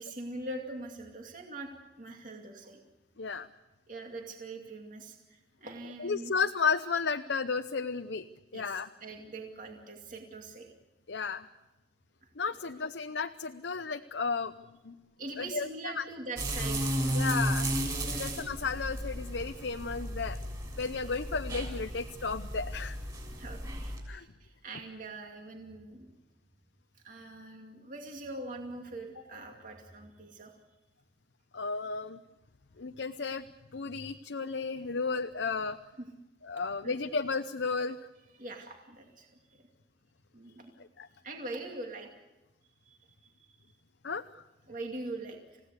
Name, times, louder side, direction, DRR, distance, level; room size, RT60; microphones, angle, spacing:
voice 1, 0.0-1.7 2.0-2.8 3.9-6.3 8.5-10.7 11.2-11.3 12.2-12.3 15.2-17.2 18.0-18.2 23.4-26.1 27.0-30.5 36.8-36.9 38.3-39.7 40.3-40.7 41.2-42.1 42.8-43.6 44.7-45.6, right 2 dB, 45° right, 2 dB, 2.5 m, -43 dB
voice 2, 3.2-3.5 6.0-8.3 8.5-8.9 11.1-11.5 12.4-14.5 14.8-15.0 15.4-16.0 17.1-17.7 18.2-20.4 20.8-23.0 24.1-24.3 31.5-32.2 32.8-33.5 33.7-35.8 36.5-38.0 41.0-41.1 44.0-44.4, left 5 dB, 80° left, 8 dB, 0.7 m, -33 dB
sound 1, 16.4-24.0, equal, 20° right, 6.7 m, -34 dB
30.0 x 16.5 x 8.2 m, 1.1 s
head